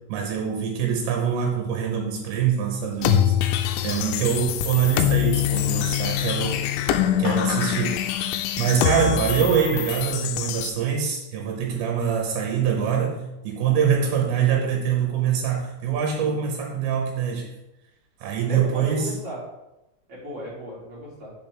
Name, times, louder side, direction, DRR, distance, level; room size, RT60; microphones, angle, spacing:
voice 1, 0.1-6.6 7.2-8.0 8.6-17.5 18.2-19.1, right 7 dB, 80° right, 0 dB, 3.5 m, -24 dB
sound 1, 3.0-10.7, left 11 dB, 85° left, 2.9 m, -24 dB
voice 2, 18.5-19.4 20.1-21.3, equal, 35° right, -8 dB, 3.9 m, -36 dB
8.7 x 6.7 x 3.5 m, 0.93 s
omnidirectional pair, 5.2 m